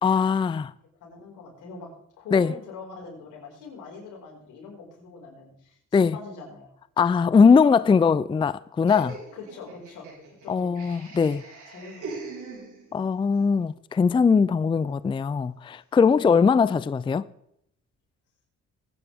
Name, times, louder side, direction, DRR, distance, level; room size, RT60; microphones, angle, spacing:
voice 1, 0.0-0.7 2.3-2.5 5.9-6.2 7.0-9.2 10.5-11.4 12.9-17.3, left 5 dB, 15° left, 0.4 m, -20 dB
voice 2, 1.0-1.9 2.2-6.7 7.7-7.9 9.3-10.1 10.4-10.8 11.7-12.5, left 4 dB, 90° left, 5.3 m, -43 dB
Laughter, 8.9-13.1, right 3 dB, 80° right, 6.4 m, -41 dB
22.0 x 9.7 x 3.5 m
cardioid pair, 90°, 30 cm